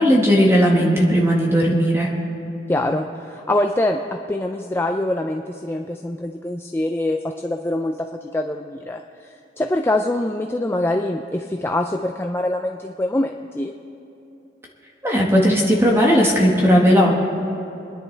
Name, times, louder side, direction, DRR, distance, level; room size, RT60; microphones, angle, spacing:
voice 1, 0.0-2.1 15.0-17.1, equal, 15° right, -2 dB, 1.5 m, -16 dB
voice 2, 2.7-13.7, left 1 dB, 15° left, 4 dB, 0.4 m, -24 dB
28.0 x 10.5 x 3.4 m, 2.9 s
head